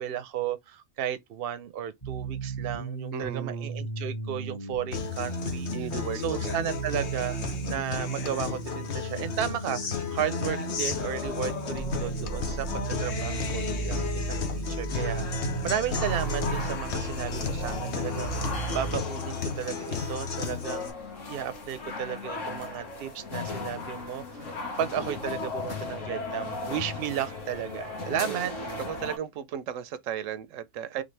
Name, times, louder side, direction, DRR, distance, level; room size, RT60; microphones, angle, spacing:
voice 1, 0.0-5.7 6.2-20.9 21.3-24.4 24.8-28.5, right 10 dB, 55° right, 0.8 m, -34 dB
sound 1, 2.0-18.9, right 4 dB, 25° left, 1.4 m, -35 dB
voice 2, 3.1-3.7 5.7-6.7 28.0-28.5 28.8-31.0, right 9 dB, 85° right, 1.0 m, -36 dB
Guitar, 4.9-20.9, left 5 dB, 60° left, 1.3 m, -33 dB
sound 2, 15.9-29.2, left 3 dB, 80° left, 1.9 m, -37 dB
3.9 x 3.5 x 3.3 m
omnidirectional pair, 1.3 m